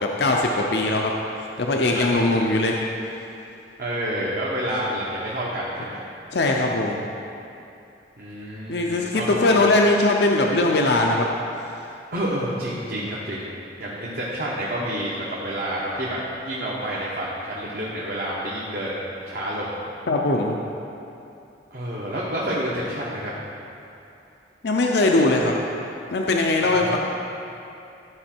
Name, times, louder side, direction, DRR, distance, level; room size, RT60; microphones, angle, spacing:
voice 1, 0.0-1.1 1.6-2.8 6.3-7.0 8.7-11.3 20.1-20.6 24.6-25.6 26.1-27.0, left 2 dB, 60° left, 1 dB, 0.6 m, -20 dB
voice 2, 1.9-2.2 3.8-6.0 8.2-9.6 12.1-13.5 13.8-19.7 21.7-23.3 26.6-27.0, equal, 55° right, -7 dB, 1.1 m, -29 dB
13.0 x 4.9 x 4.5 m, 2.7 s
head